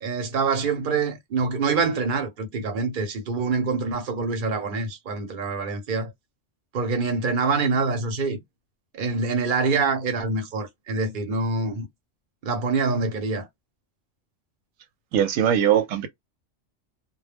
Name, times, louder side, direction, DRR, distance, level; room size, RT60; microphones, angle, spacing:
voice 1, 0.0-6.1 6.7-8.4 8.9-11.9 12.4-13.5, right 4 dB, 45° right, 0.9 m, -25 dB
voice 2, 15.1-16.1, right 9 dB, 90° right, 1.0 m, -21 dB
2.2 x 2.1 x 3.2 m
omnidirectional pair, 1.3 m